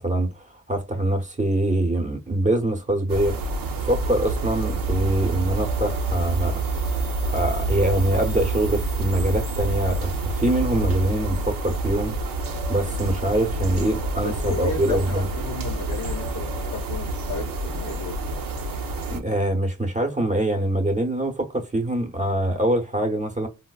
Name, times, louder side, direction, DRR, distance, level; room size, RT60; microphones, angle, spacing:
voice 1, 0.0-3.4 3.8-6.6 7.3-12.1 12.7-15.3 19.1-23.5, right 1 dB, 20° right, 0.8 m, -24 dB
sound 1, 3.1-19.2, right 2 dB, 80° right, 0.7 m, -28 dB
sound 2, 4.2-12.0, left 1 dB, 15° left, 0.7 m, -46 dB
voice 2, 14.2-18.2, left 5 dB, 55° left, 0.6 m, -33 dB
3.8 x 2.0 x 2.3 m
cardioid pair, 60°, 34 cm